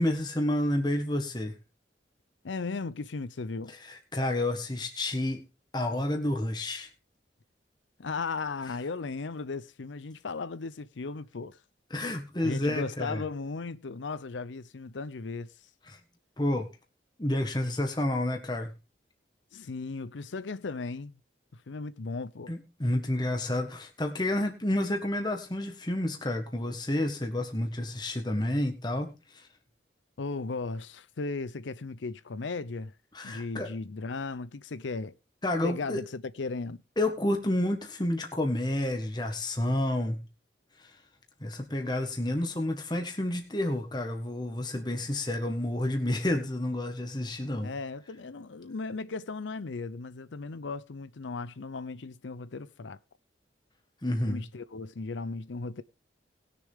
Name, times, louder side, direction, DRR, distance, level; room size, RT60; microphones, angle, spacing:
voice 1, 0.0-1.5 3.7-5.4 5.7-6.9 11.9-13.2 15.9-16.0 16.4-16.7 17.2-18.7 22.5-29.5 33.1-33.7 35.4-36.0 37.0-40.2 41.4-47.7 54.0-54.4, left 1 dB, 25° left, 1.6 m, -30 dB
voice 2, 2.4-3.7 8.0-11.6 12.4-15.5 19.5-21.2 21.5-22.5 30.2-32.9 33.2-35.1 35.6-36.8 47.6-53.0 54.3-55.8, left 4 dB, 85° left, 0.6 m, -36 dB
19.5 x 6.9 x 3.6 m
head